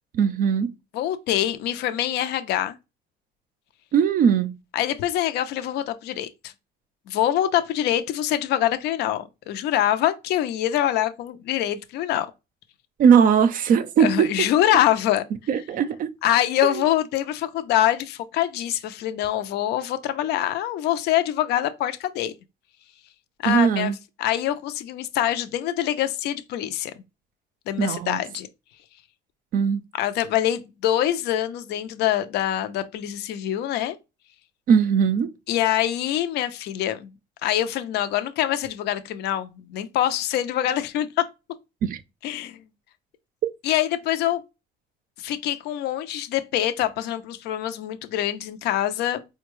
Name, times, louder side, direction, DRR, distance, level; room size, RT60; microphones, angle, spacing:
voice 1, 0.1-0.7 3.9-4.5 13.0-14.5 15.5-16.1 16.6-16.8 23.4-23.9 27.8-28.2 29.5-29.8 34.7-35.3 41.8-42.0 43.4-43.5, right 7 dB, 55° right, 0.4 m, -20 dB
voice 2, 0.9-2.8 4.7-6.5 7.1-12.3 14.0-15.2 16.2-22.3 23.4-23.9 24.2-26.9 27.7-28.5 30.0-34.0 35.5-37.1 37.4-41.2 42.2-42.6 43.6-44.4 45.2-49.3, left 12 dB, 80° left, 0.5 m, -24 dB
4.4 x 2.2 x 3.0 m
cardioid pair, 110°, 17 cm